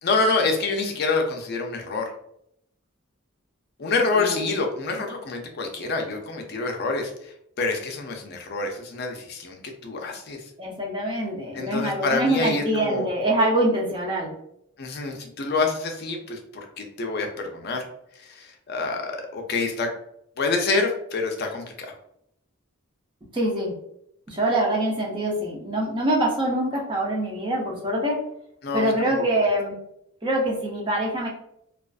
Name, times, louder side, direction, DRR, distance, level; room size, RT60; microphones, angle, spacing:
voice 1, 0.0-2.1 3.8-10.4 11.5-13.1 14.8-17.3 17.5-17.9 18.2-19.9 20.4-21.9 28.6-29.1, left 3 dB, 50° left, 3 dB, 0.4 m, -27 dB
voice 2, 4.1-4.6 10.6-14.3 23.3-23.7 24.3-28.2 28.7-29.7 30.2-31.3, right 1 dB, 20° right, -2 dB, 0.5 m, -24 dB
2.4 x 2.3 x 2.3 m, 0.74 s
head